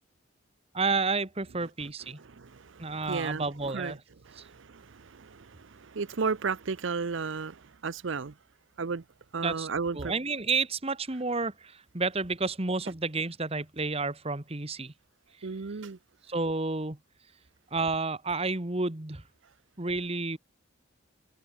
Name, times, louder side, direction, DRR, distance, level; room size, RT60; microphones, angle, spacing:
voice 1, 0.7-2.2 2.8-4.0 4.4-4.5 9.4-9.7 9.9-14.9 16.3-17.0 17.7-19.2 19.8-20.4, right 3 dB, 30° right, 1.4 m, -30 dB
voice 2, 2.2-3.5 3.7-3.9 4.3-8.3 8.8-9.0 9.3-10.1 15.4-16.0, right 5 dB, 65° right, 0.6 m, -34 dB
head